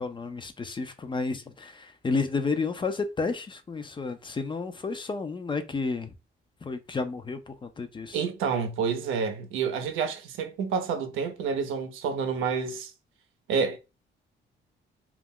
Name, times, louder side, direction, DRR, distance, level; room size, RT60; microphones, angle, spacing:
voice 1, 0.0-6.1 6.6-8.2, left 4 dB, 25° left, 0.4 m, -31 dB
voice 2, 8.1-12.9 13.5-13.8, right 6 dB, 90° right, 0.6 m, -29 dB
2.3 x 2.1 x 3.5 m
cardioid pair, 90°, 20 cm